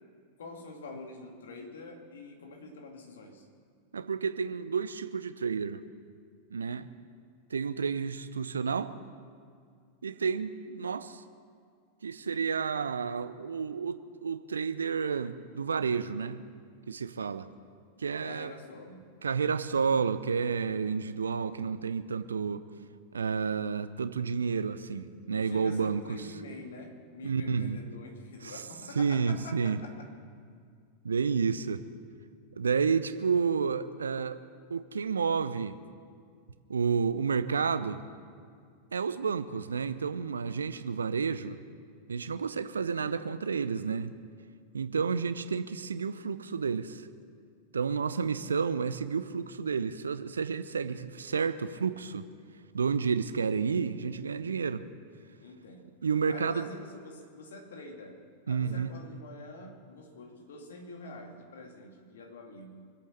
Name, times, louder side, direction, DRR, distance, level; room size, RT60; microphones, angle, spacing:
voice 1, 0.4-3.5 18.2-19.1 25.3-30.1 55.4-55.9 56.3-62.9, left 2 dB, 65° left, 3 dB, 2.3 m, -46 dB
voice 2, 3.9-5.8 6.5-6.9 7.5-8.9 10.0-11.2 12.0-16.4 16.9-17.5 18.0-18.5 19.2-22.6 23.1-26.2 27.2-27.8 28.4-28.6 28.9-29.8 31.0-31.8 32.5-34.4 34.7-35.8 36.7-38.0 38.9-41.6 42.1-44.1 44.7-47.1 47.7-52.3 52.7-54.9 56.0-56.7 58.5-59.0, right 5 dB, 70° right, 12 dB, 0.7 m, -30 dB
24.5 x 8.5 x 6.6 m, 2.2 s
figure-of-eight pair, 90°, 0 cm